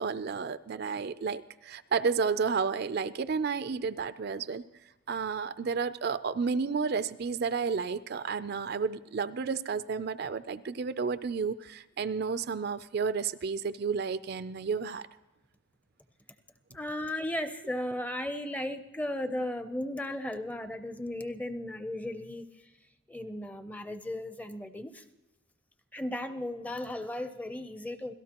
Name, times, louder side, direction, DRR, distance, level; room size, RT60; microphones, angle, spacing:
voice 1, 0.0-4.6 5.1-15.1, right 5 dB, 50° right, 14 dB, 0.4 m, -31 dB
voice 2, 16.7-22.4 23.1-25.0 25.9-28.1, left 1 dB, 5° left, 10 dB, 0.6 m, -35 dB
26.0 x 17.5 x 2.9 m, 1.1 s
head